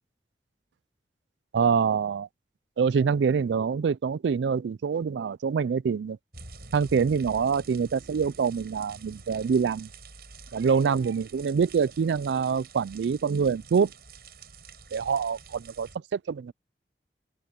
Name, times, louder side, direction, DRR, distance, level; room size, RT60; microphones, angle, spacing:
voice 1, 1.5-2.3 2.8-6.2 6.7-9.9 10.5-13.9 14.9-16.5, right 6 dB, 85° right, 0.4 m, -25 dB
sound 1, 6.3-16.0, right 4 dB, 60° right, 7.4 m, -48 dB
open air
head